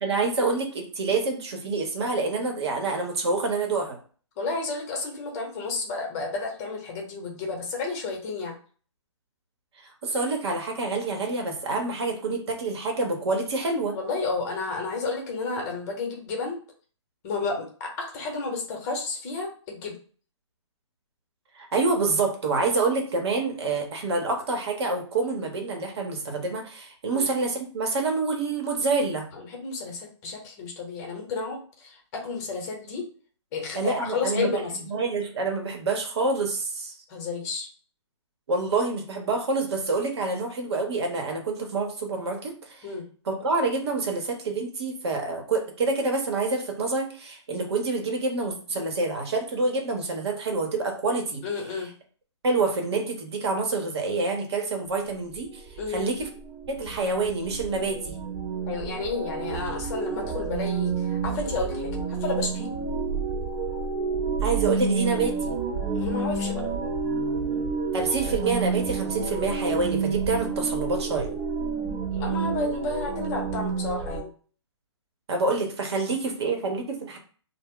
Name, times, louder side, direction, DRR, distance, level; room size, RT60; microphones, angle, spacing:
voice 1, 0.0-4.0 10.0-13.9 21.6-29.2 33.7-36.9 38.5-42.9 43.3-51.4 52.4-55.6 55.9-56.3 56.7-58.2 64.4-65.5 67.9-71.4 75.3-77.2, right 3 dB, 60° right, 3 dB, 0.8 m, -27 dB
voice 2, 4.4-8.5 13.9-16.6 17.2-19.9 27.1-27.3 29.3-33.0 33.5-34.7 37.1-37.7 42.8-43.1 51.4-51.9 55.8-56.1 58.7-62.7 65.9-66.6 72.1-74.3, left 3 dB, 30° left, 1 dB, 0.9 m, -31 dB
sound 1, 54.9-74.2, right 5 dB, 30° right, 0.5 m, -29 dB
2.1 x 2.0 x 3.6 m, 0.42 s
hypercardioid pair, 140°, 16 cm